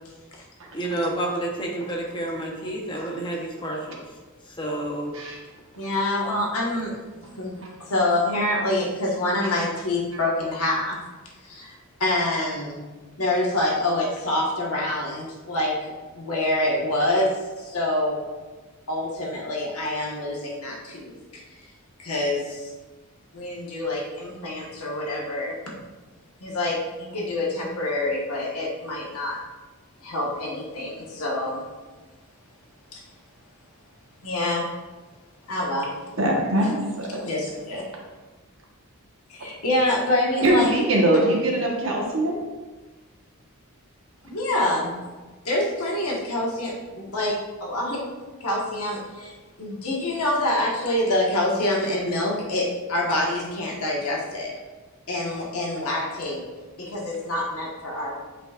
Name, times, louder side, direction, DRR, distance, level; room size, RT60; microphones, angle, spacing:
voice 1, 0.7-4.0 4.5-5.2, right 1 dB, 20° left, -1 dB, 1.0 m, -29 dB
voice 2, 5.8-6.9 7.4-11.0 11.4-11.7 12.0-12.8 13.2-15.7 16.1-17.3 17.6-18.2 18.9-21.4 22.0-22.7 23.3-25.6 26.4-29.4 30.0-31.6 32.9-33.0 34.2-34.6 35.5-35.9 37.2-37.8 39.3-40.7 44.2-44.9 45.4-48.0 48.4-49.3 49.6-54.5 55.1-56.4 56.8-58.2, left 1 dB, 85° left, -3 dB, 1.5 m, -26 dB
voice 3, 36.2-37.2 40.4-42.4, right 1 dB, 60° right, -2 dB, 1.3 m, -22 dB
8.3 x 5.1 x 2.5 m, 1.3 s
head